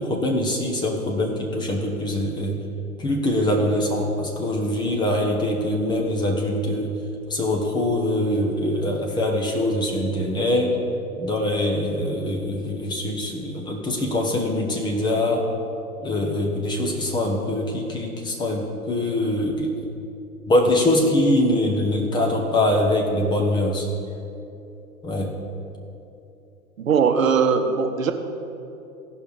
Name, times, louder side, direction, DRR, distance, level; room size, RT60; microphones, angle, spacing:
voice 1, 0.0-2.6 3.0-6.9 7.3-10.8 11.2-15.5 16.0-19.8 20.5-23.9 25.0-25.3, left 1 dB, 10° left, 1 dB, 0.7 m, -23 dB
voice 2, 26.8-28.1, right 6 dB, 65° right, 7 dB, 0.9 m, -20 dB
15.5 x 5.5 x 4.7 m, 2.8 s
figure-of-eight pair, 105°, 43 cm